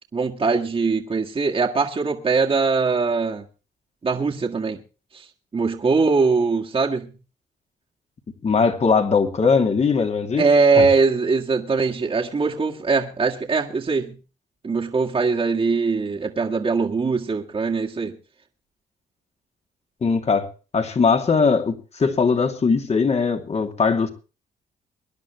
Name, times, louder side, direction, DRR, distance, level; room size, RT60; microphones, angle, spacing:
voice 1, 0.1-3.4 4.0-4.8 5.1-5.3 5.5-7.1 10.4-14.2 14.6-18.2, right 4 dB, 35° right, 2.0 m, -21 dB
voice 2, 8.4-10.5 10.7-10.9 20.0-20.5 20.7-24.1, left 5 dB, 45° left, 2.6 m, -20 dB
24.0 x 10.5 x 3.2 m
cardioid pair, 75°, 16 cm